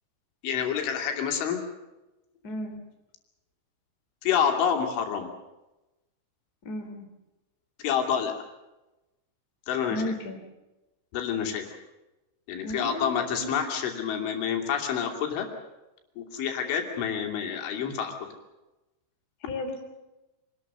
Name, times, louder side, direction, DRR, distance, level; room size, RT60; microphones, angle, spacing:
voice 1, 0.4-1.6 4.2-5.3 7.8-8.3 9.7-10.1 11.1-11.8 12.5-15.5 16.2-18.1, left 7 dB, 85° left, 3 dB, 5.2 m, -28 dB
voice 2, 2.4-2.8 6.6-7.1 9.9-10.4 12.6-13.7 19.5-19.8, left 1 dB, 25° left, 4 dB, 2.7 m, -34 dB
25.5 x 20.0 x 6.8 m, 1.0 s
omnidirectional pair, 5.3 m